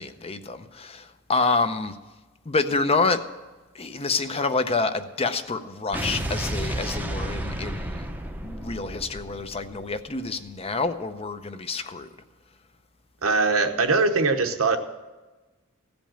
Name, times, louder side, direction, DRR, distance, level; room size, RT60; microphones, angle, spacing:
voice 1, 0.0-2.0 2.5-3.2 3.7-8.1 8.4-12.1, left 3 dB, 30° left, 0.6 m, -27 dB
Explosion, 5.9-10.3, right 1 dB, 10° right, 0.7 m, -32 dB
voice 2, 13.2-14.8, right 3 dB, 75° right, 0.9 m, -21 dB
15.5 x 5.2 x 8.8 m
head